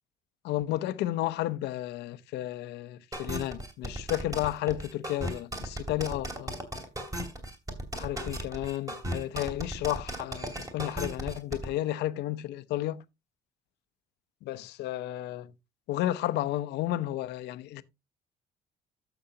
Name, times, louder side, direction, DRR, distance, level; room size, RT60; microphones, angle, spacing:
voice 1, 0.4-6.5 7.9-13.0 14.4-15.5 15.9-17.8, left 14 dB, 80° left, 0.7 m, -32 dB
sound 1, 3.1-11.7, right 1 dB, 20° right, 3.0 m, -36 dB
12.5 x 7.0 x 2.8 m
cardioid pair, 110°, 17 cm